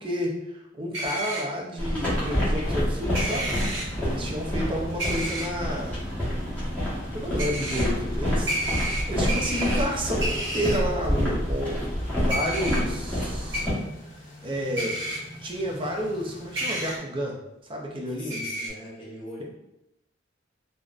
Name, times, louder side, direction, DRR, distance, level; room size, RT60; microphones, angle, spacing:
voice 1, 0.0-3.5 4.0-6.0 7.1-11.8 12.2-13.7 14.4-15.0 15.4-17.3 17.7-18.4, equal, 30° right, -1 dB, 0.5 m, -30 dB
sound 1, 0.9-1.4 3.1-3.8 5.0-5.5 7.4-7.8 8.5-9.8 10.2-10.8 12.3-12.8 13.5-13.6 14.8-15.2 16.5-17.0 18.3-18.7, right 1 dB, 70° right, 0.9 m, -30 dB
sound 2, 1.8-13.7, equal, 10° left, 1.1 m, -28 dB
sound 3, 2.1-17.0, equal, 70° left, 1.1 m, -45 dB
voice 2, 4.0-4.5 18.1-19.4, left 1 dB, 25° left, -6 dB, 0.7 m, -42 dB
3.6 x 2.1 x 2.4 m, 0.87 s
head